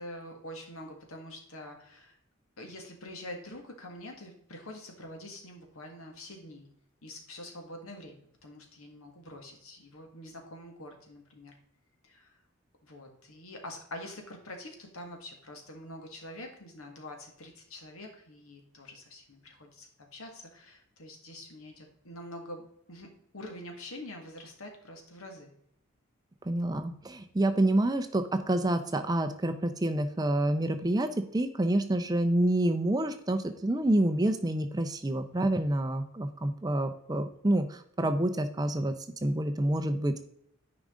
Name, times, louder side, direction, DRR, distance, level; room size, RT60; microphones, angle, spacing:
voice 1, 0.0-2.2 2.6-6.7 7.0-11.5 12.0-12.3 12.8-25.5, left 1 dB, 85° left, 3 dB, 1.8 m, -45 dB
voice 2, 26.5-38.9 39.2-40.3, right 1 dB, 20° right, 8 dB, 0.5 m, -28 dB
9.9 x 5.0 x 3.7 m, 0.70 s
head